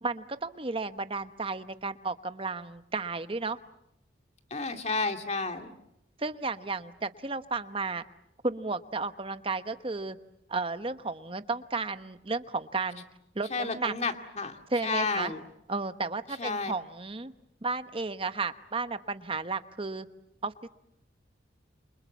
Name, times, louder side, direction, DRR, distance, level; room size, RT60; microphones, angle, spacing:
voice 1, 0.0-3.6 6.2-8.0 8.4-10.2 10.5-13.0 13.3-13.9 14.7-15.3 15.7-17.3 17.6-20.1 20.4-20.7, right 3 dB, 30° right, 11 dB, 1.0 m, -33 dB
voice 2, 4.5-5.7 13.5-14.6 14.8-15.4 16.4-16.7, left 3 dB, 35° left, 5 dB, 2.3 m, -31 dB
28.5 x 25.5 x 7.4 m, 0.83 s
head